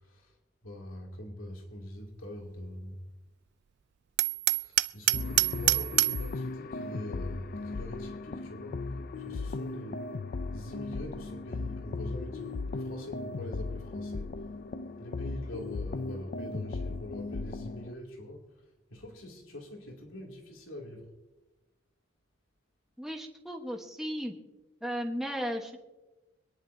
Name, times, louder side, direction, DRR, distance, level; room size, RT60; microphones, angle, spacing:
voice 1, 0.6-3.0 4.6-8.8 9.2-10.0 10.5-12.4 12.7-14.4 15.0-18.5 18.9-21.1, left 1 dB, 85° left, 2.8 m, -43 dB
Hammer, 4.2-6.3, right 18 dB, 55° right, 0.3 m, -26 dB
sound 1, 5.1-17.9, left 3 dB, 45° left, 0.4 m, -37 dB
voice 2, 23.0-24.3 24.8-25.8, equal, ahead, 1.2 m, -35 dB
25.5 x 10.5 x 2.7 m
head